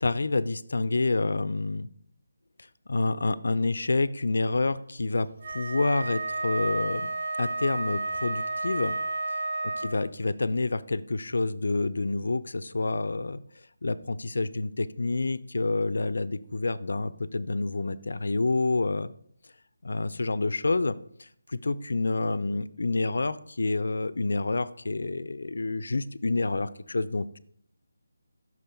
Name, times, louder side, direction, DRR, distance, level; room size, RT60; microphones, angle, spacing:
voice 1, 0.0-1.9 2.9-7.1 7.4-9.0 9.8-13.4 13.8-19.1 19.8-21.0 21.6-27.4, left 3 dB, 70° left, 16 dB, 0.4 m, -28 dB
Wind instrument woodwind instrument, 5.4-10.1, right 2 dB, 35° right, 0.6 m, -31 dB
6.1 x 5.3 x 4.4 m, 0.66 s
figure-of-eight pair, 170°, 0 cm